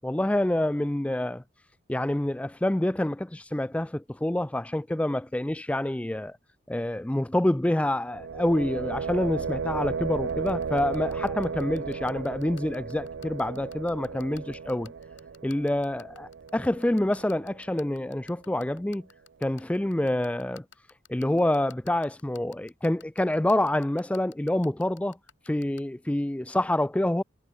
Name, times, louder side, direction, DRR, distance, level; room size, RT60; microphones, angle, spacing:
voice 1, 0.0-1.4 1.9-6.4 6.7-14.9 15.4-19.1 19.4-20.6 21.1-25.2 25.5-27.2, left 1 dB, 5° left, 0.3 m, -27 dB
sound 1, 8.1-17.9, right 5 dB, 75° right, 0.5 m, -35 dB
sound 2, 10.3-25.8, left 8 dB, 85° left, 5.4 m, -51 dB
head